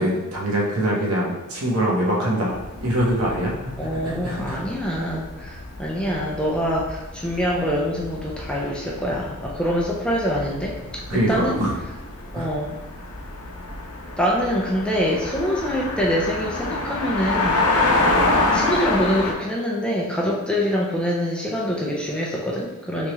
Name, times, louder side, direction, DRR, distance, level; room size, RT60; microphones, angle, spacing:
voice 1, 0.0-4.6 11.1-11.7 12.3-12.5, right 1 dB, 75° right, -3 dB, 0.9 m, -24 dB
sound 1, 2.5-19.3, left 2 dB, 90° left, 0.6 m, -27 dB
voice 2, 3.8-10.7 11.1-11.6 12.3-12.8 14.2-17.9 18.5-23.1, equal, 5° left, -4 dB, 0.4 m, -25 dB
3.4 x 2.9 x 3.0 m, 1.1 s
head